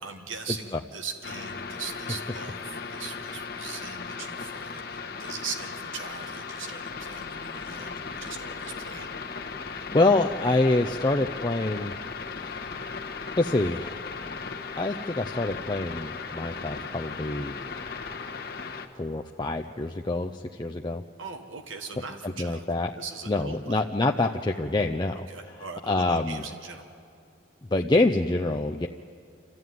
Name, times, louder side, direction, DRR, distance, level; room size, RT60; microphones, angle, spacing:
voice 1, 0.0-9.1 21.2-23.8 25.1-26.9, right 5 dB, 90° right, 4 dB, 1.5 m, -40 dB
sound 1, 1.2-18.9, left 5 dB, 50° left, 1.4 m, -37 dB
voice 2, 9.6-11.9 12.4-12.7 13.4-14.0 14.8-17.6 19.0-21.0 22.4-22.9 23.3-25.3 25.9-26.4 27.7-28.9, left 2 dB, 20° left, 3 dB, 0.5 m, -26 dB
27.5 x 14.0 x 9.4 m, 2.6 s
head